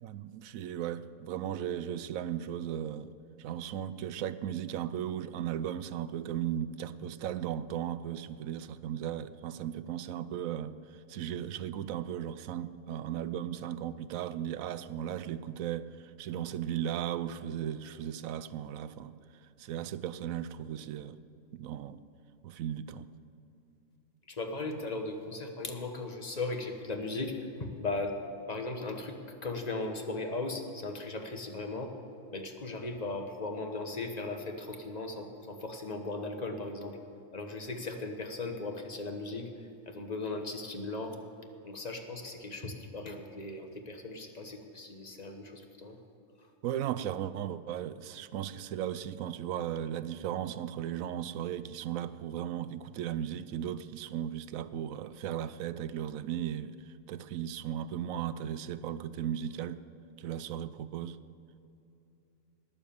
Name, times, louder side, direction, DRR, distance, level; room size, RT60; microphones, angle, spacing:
voice 1, 0.0-3.1 3.4-10.8 11.1-19.1 19.6-21.2 21.5-22.0 22.4-23.1 46.6-59.8 60.2-61.2, right 10 dB, 80° right, 1.0 m, -36 dB
voice 2, 24.3-28.1 28.5-31.9 32.3-37.0 37.3-41.2 41.6-46.0, left 3 dB, 30° left, 1.3 m, -37 dB
19.5 x 7.2 x 7.1 m
omnidirectional pair, 1.4 m